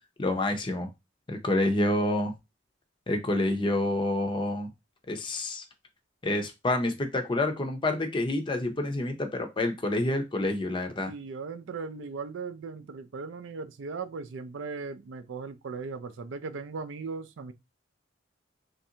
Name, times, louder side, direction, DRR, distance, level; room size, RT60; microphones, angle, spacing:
voice 1, 0.2-0.9 1.3-2.3 3.1-4.7 5.1-5.6 6.2-11.1, left 1 dB, 25° left, 0.6 m, -28 dB
voice 2, 11.1-17.5, right 4 dB, 70° right, 0.4 m, -38 dB
3.2 x 2.5 x 2.8 m
head